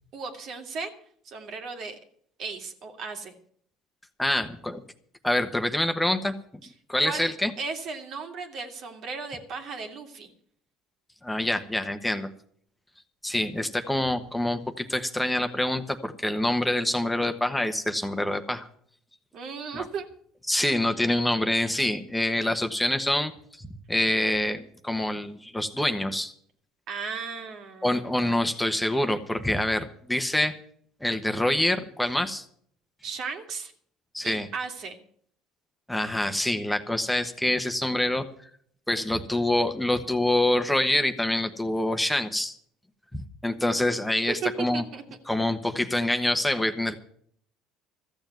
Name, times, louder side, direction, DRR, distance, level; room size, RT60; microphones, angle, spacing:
voice 1, 0.1-0.9 1.2-2.0 2.4-3.3 7.0-7.3 7.6-10.3 19.3-20.1 26.9-28.0 33.0-33.7 34.2-35.0 44.3-45.0, right 5 dB, 60° right, 5 dB, 2.4 m, -35 dB
voice 2, 4.2-4.8 5.2-6.3 6.9-7.5 11.2-12.3 13.2-18.7 19.7-19.8 20.5-23.3 23.6-26.3 27.8-30.5 31.0-32.5 34.1-34.5 35.9-38.3 38.9-42.5 43.1-44.8 45.3-47.0, left 1 dB, 5° left, 6 dB, 1.1 m, -26 dB
14.0 x 7.1 x 9.3 m, 0.62 s
supercardioid pair, 95°, 0 cm